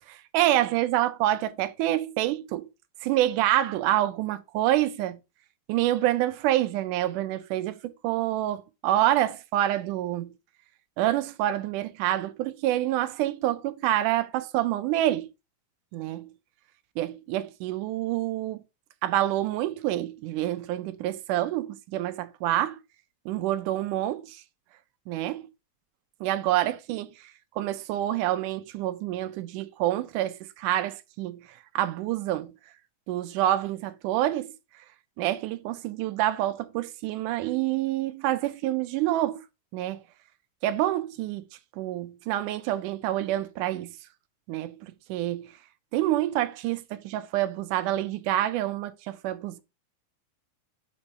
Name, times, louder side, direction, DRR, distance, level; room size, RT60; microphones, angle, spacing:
voice 1, 0.3-2.7 3.0-5.2 5.7-10.3 11.0-15.3 15.9-16.3 17.0-18.6 19.0-22.8 23.3-24.4 25.1-25.5 26.2-27.1 27.6-31.4 31.8-32.5 33.1-34.5 35.2-39.4 39.7-40.0 40.6-41.4 41.8-43.9 44.5-45.5 45.9-49.6, right 13 dB, 80° right, 1.9 m, -27 dB
6.2 x 4.3 x 5.4 m
omnidirectional pair, 4.3 m